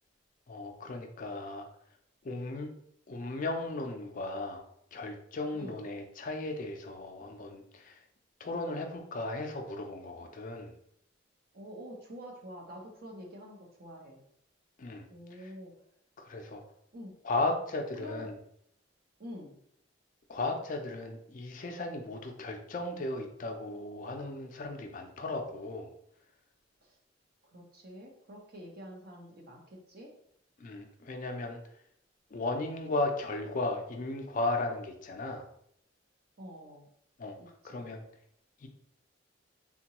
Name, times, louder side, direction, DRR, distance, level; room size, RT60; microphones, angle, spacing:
voice 1, 0.5-1.7 2.2-2.7 3.1-4.6 4.9-8.0 8.4-10.7 14.8-15.0 15.4-15.5 16.2-16.6 17.2-18.4 20.3-25.9 30.6-31.6 32.3-35.5 37.2-37.4 37.6-38.0 38.6-38.7, left 2 dB, 45° left, 4 dB, 0.4 m, -35 dB
voice 2, 11.5-14.2 15.1-15.7 16.9-17.1 18.0-18.3 19.2-19.6 26.8-26.9 27.5-30.1 36.4-36.9 37.6-37.8, equal, 50° right, 0 dB, 0.7 m, -47 dB
3.7 x 2.2 x 2.9 m, 0.70 s
head